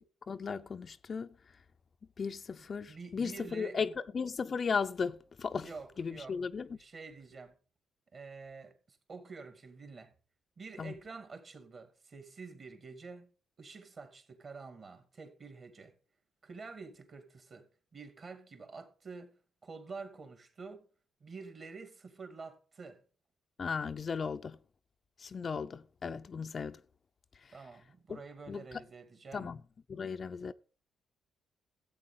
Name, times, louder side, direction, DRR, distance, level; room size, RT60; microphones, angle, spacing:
voice 1, 0.0-1.3 2.2-5.7 6.0-6.7 10.8-11.0 23.6-24.6 25.2-26.8 27.4-27.5 28.1-28.2 28.5-28.6 29.3-29.6 29.9-30.5, left 5 dB, 40° left, 0.5 m, -36 dB
voice 2, 2.9-4.0 5.6-6.4 6.8-7.5 8.1-10.1 10.6-13.3 13.6-15.9 16.4-17.7 17.9-20.8 21.2-23.0 27.5-29.5, right 4 dB, 45° right, 2.3 m, -48 dB
13.0 x 8.3 x 3.7 m
cardioid pair, 90°, 0 cm